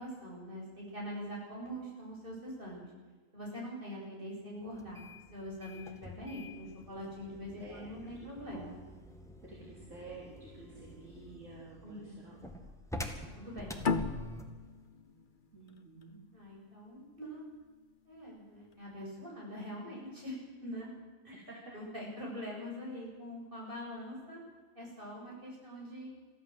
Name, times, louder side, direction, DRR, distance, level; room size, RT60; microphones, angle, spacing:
voice 1, 0.0-2.9 3.3-8.8 11.8-12.2 13.2-13.8 16.3-17.4 18.0-20.9 21.2-21.3 21.7-24.4 24.7-26.1, equal, 35° right, -3 dB, 8.3 m, -43 dB
sound 1, 4.7-14.6, left 1 dB, ahead, 2.0 m, -47 dB
voice 2, 7.6-7.9 8.5-8.8 9.4-12.4 12.7-12.8 15.5-16.2 21.3-21.4, right 3 dB, 60° right, -4 dB, 4.0 m, -51 dB
sound 2, 13.8-17.0, left 4 dB, 40° left, 1.2 m, -36 dB
23.0 x 14.5 x 7.9 m, 1.3 s
omnidirectional pair, 1.5 m